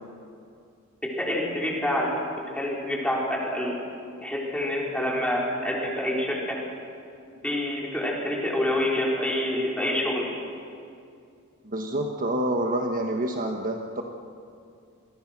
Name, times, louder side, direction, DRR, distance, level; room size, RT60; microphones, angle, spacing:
voice 1, 1.0-2.1 2.5-3.7 4.2-6.6 7.4-10.2, left 1 dB, 5° left, -3 dB, 4.7 m, -27 dB
voice 2, 11.6-14.0, right 1 dB, 40° right, 3 dB, 1.4 m, -27 dB
27.5 x 22.0 x 6.1 m, 2.4 s
head